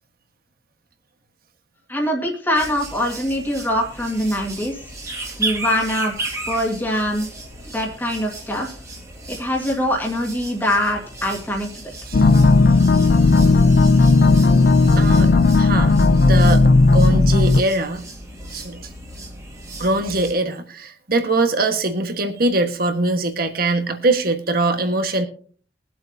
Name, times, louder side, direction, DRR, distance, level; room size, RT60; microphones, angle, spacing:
voice 1, 1.9-4.9 5.4-6.1 6.5-7.3 7.7-8.7 9.3-11.9, equal, 10° left, -1 dB, 1.8 m, -23 dB
sound 1, 2.5-20.3, right 2 dB, 20° right, 2.1 m, -35 dB
sound 2, 12.1-17.6, left 3 dB, 55° left, 0.5 m, -14 dB
voice 2, 14.9-15.9 16.3-18.0 18.5-18.9 19.8-25.3, right 2 dB, 55° right, 7 dB, 1.4 m, -22 dB
22.0 x 7.8 x 2.7 m, 0.43 s
head